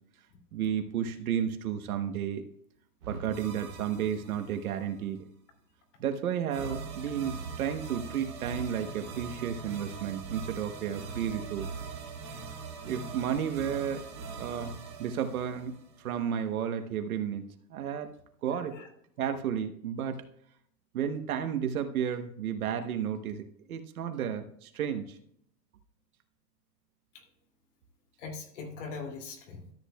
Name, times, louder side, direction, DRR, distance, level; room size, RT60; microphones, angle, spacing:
voice 1, 0.5-2.4 3.1-5.2 6.0-11.7 12.9-14.0 14.4-14.7 15.0-17.4 17.7-18.1 18.4-18.8 19.2-20.2 20.9-25.2, right 8 dB, 60° right, 8 dB, 1.1 m, -32 dB
sound 1, 3.0-4.9 6.5-16.2, right 4 dB, 15° right, 0.7 m, -41 dB
voice 2, 18.5-18.9 27.1-27.3 28.2-29.7, left 4 dB, 45° left, 2 dB, 2.6 m, -42 dB
13.5 x 8.1 x 2.2 m, 0.68 s
supercardioid pair, 180°, 50 cm